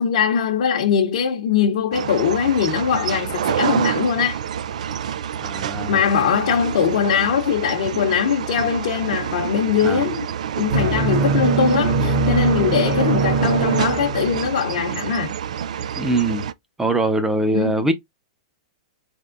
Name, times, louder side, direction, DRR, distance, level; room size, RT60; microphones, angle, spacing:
voice 1, 0.0-4.4 5.9-10.2 10.6-15.3 17.5-17.8, left 7 dB, 65° left, 0.8 m, -21 dB
sound 1, 1.9-16.5, right 9 dB, 75° right, 0.4 m, -28 dB
voice 2, 5.3-6.0 9.8-10.0 16.0-16.5 16.8-17.9, right 2 dB, 10° right, 0.6 m, -22 dB
sound 2, 10.7-14.8, right 4 dB, 55° right, 1.2 m, -22 dB
4.1 x 3.6 x 2.5 m
hypercardioid pair, 135°, 4 cm